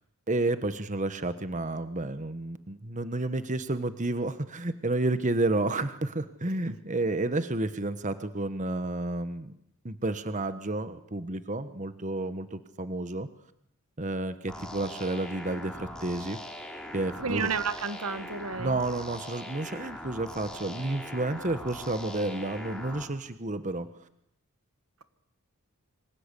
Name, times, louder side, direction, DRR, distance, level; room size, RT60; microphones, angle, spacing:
voice 1, 0.3-9.6 9.8-13.3 14.0-16.4 16.9-17.5 18.6-23.9, right 2 dB, 35° right, 11 dB, 1.3 m, -31 dB
sound 1, 14.5-23.0, left 1 dB, 5° left, 4.0 m, -41 dB
voice 2, 17.2-18.8, right 5 dB, 80° right, 11 dB, 1.8 m, -31 dB
27.0 x 25.0 x 8.4 m, 0.76 s
head